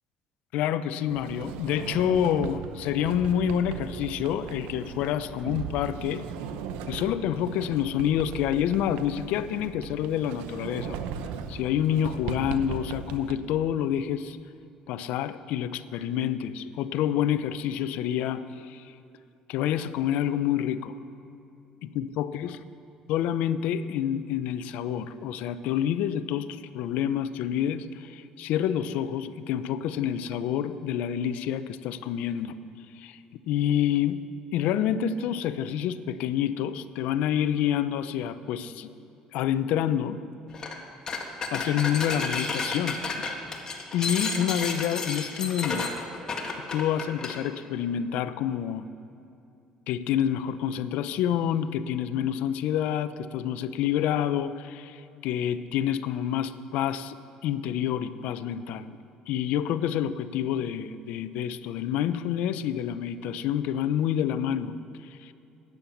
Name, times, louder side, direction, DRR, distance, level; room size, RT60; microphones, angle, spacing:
voice 1, 0.5-6.2 6.9-11.0 11.5-14.4 14.9-18.9 19.5-20.9 21.8-22.6 23.1-32.6 33.0-33.2 33.5-34.2 34.5-38.9 39.3-40.2 41.5-43.0 43.9-45.9 46.7-48.9 49.9-57.2 57.4-59.0 59.3-64.7 65.2-65.3, left 10 dB, 75° left, 13 dB, 0.5 m, -28 dB
Sliding door, 1.1-13.3, right 6 dB, 90° right, 0.7 m, -38 dB
sound 1, 40.5-40.8 41.1-47.4, left 4 dB, 30° left, 1.6 m, -32 dB
13.0 x 9.3 x 7.1 m, 2.6 s
cardioid pair, 110°, 2 cm